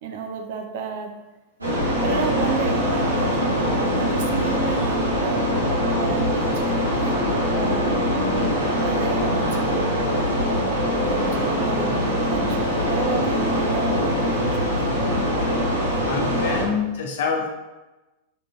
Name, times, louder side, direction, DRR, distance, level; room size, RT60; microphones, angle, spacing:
voice 1, 0.0-1.1 2.0-3.6 4.0-5.5 6.0-6.9 7.5-8.0 8.8-10.1 11.1-12.0 12.3-14.8, right 5 dB, 55° right, 4 dB, 0.4 m, -31 dB
sound 1, 1.6-16.6, equal, 80° right, 1.1 m, -23 dB
voice 2, 16.1-17.5, left 5 dB, 55° left, 1 dB, 0.7 m, -26 dB
5.1 x 3.7 x 2.2 m, 1.1 s
figure-of-eight pair, 90°, 0 cm